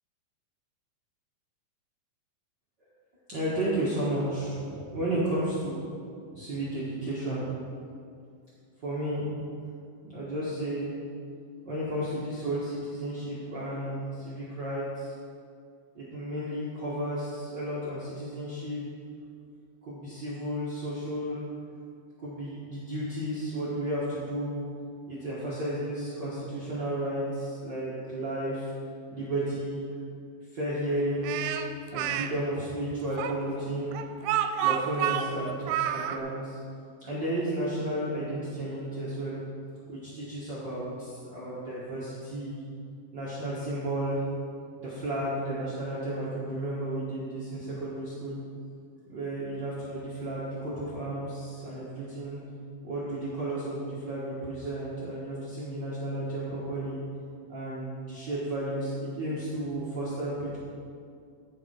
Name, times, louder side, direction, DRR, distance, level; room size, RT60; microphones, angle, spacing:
voice 1, 3.3-5.9 6.3-7.5 8.8-9.3 10.0-10.9 11.6-15.1 15.9-18.8 19.8-21.4 22.2-24.6 25.1-28.7 29.1-29.8 30.5-31.4 31.9-34.0 34.6-36.6 37.0-39.4 39.9-42.6 43.1-44.2 44.8-48.4 49.1-52.4 52.8-57.0 57.5-60.6, right 1 dB, 70° right, -8 dB, 1.0 m, -33 dB
Speech, 31.2-32.3 33.2-36.2, right 11 dB, 90° right, 2.4 m, -29 dB
11.0 x 5.3 x 4.7 m, 2.3 s
omnidirectional pair, 4.2 m